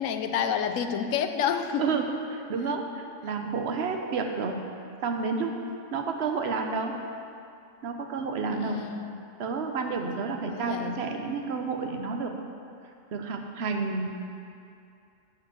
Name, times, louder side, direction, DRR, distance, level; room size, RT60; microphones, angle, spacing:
voice 1, 0.0-1.8 2.6-2.8 8.4-9.2 10.5-11.0, left 8 dB, 75° left, 8 dB, 1.0 m, -29 dB
voice 2, 1.8-4.6 5.0-5.5 5.9-6.9 7.8-8.8 9.4-12.3 13.1-14.1, right 4 dB, 55° right, 4 dB, 1.0 m, -30 dB
9.6 x 4.9 x 7.6 m, 2.5 s
omnidirectional pair, 1.4 m